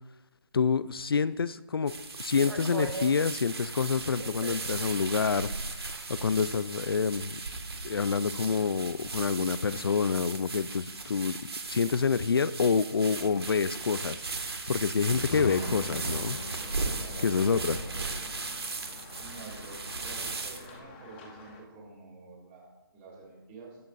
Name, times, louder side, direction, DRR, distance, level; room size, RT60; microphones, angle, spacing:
voice 1, 0.5-5.5 5.8-7.4 7.8-11.4 11.7-14.2 14.7-16.4 17.2-17.8, left 5 dB, 65° left, 16 dB, 0.5 m, -27 dB
sound 1, 1.9-20.8, right 3 dB, 75° right, 1.9 m, -37 dB
sound 2, 15.3-21.6, left 2 dB, 25° left, 2.2 m, -42 dB
voice 2, 16.8-23.8, right 3 dB, 20° right, -2 dB, 3.9 m, -49 dB
22.5 x 10.5 x 2.6 m, 1.0 s
hypercardioid pair, 165°, 13 cm